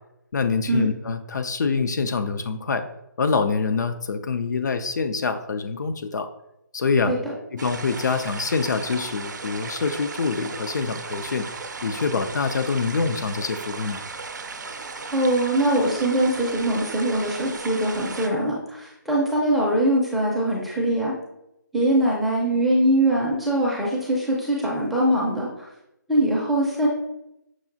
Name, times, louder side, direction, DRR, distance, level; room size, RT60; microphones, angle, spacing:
voice 1, 0.3-2.8 3.2-6.3 6.7-7.1 7.5-11.5 11.8-14.0, left 4 dB, 60° left, 8 dB, 0.4 m, -25 dB
sound 1, 7.6-18.3, right 4 dB, 65° right, 0.5 m, -36 dB
voice 2, 15.1-21.1 21.7-25.7 26.1-26.9, right 1 dB, ahead, -6 dB, 0.5 m, -22 dB
6.0 x 2.3 x 2.6 m, 0.84 s
figure-of-eight pair, 155°, 11 cm